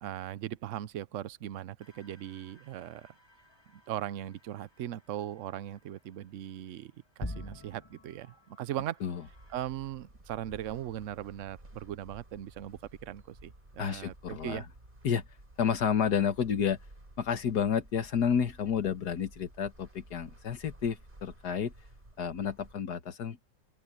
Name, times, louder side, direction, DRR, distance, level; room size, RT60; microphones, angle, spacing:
voice 1, 0.0-3.1 3.9-6.9 7.2-9.0 9.5-14.6, right 12 dB, 65° right, 0.7 m, -39 dB
sound 1, 1.8-9.6, left 1 dB, 15° left, 2.1 m, -48 dB
sound 2, 9.2-22.8, right 1 dB, 25° right, 4.7 m, -54 dB
voice 2, 13.8-14.6 15.0-15.2 15.6-16.8 17.2-21.7 22.2-23.4, left 7 dB, 60° left, 1.9 m, -30 dB
open air
omnidirectional pair, 2.0 m